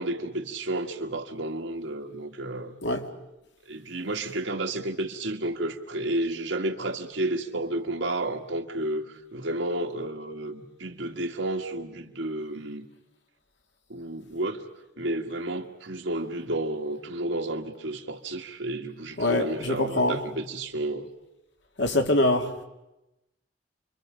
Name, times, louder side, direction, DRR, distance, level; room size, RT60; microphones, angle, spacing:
voice 1, 0.0-2.8 3.7-9.1 9.3-12.9 13.9-14.6 15.0-21.1, right 1 dB, 75° right, 1.8 m, -31 dB
voice 2, 19.2-20.3 21.8-22.6, left 2 dB, 70° left, 2.1 m, -24 dB
29.0 x 24.0 x 5.1 m
head